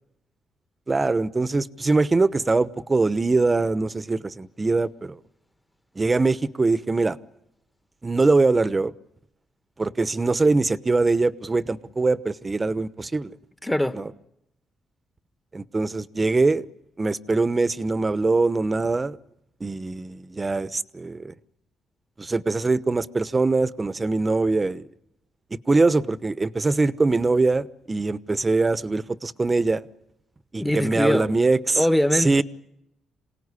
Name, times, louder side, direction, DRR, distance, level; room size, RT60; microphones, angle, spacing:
voice 1, 0.9-5.2 6.0-7.2 8.0-8.9 9.8-13.3 13.9-14.1 15.5-16.6 17.0-19.2 19.6-21.3 22.2-24.9 25.7-29.8 30.5-31.9 32.1-32.4, right 3 dB, 25° right, 1.0 m, -22 dB
voice 2, 13.6-14.0 30.6-31.3 31.8-32.4, left 1 dB, 10° left, 1.3 m, -22 dB
27.5 x 18.0 x 9.8 m
cardioid pair, 90°, 0 cm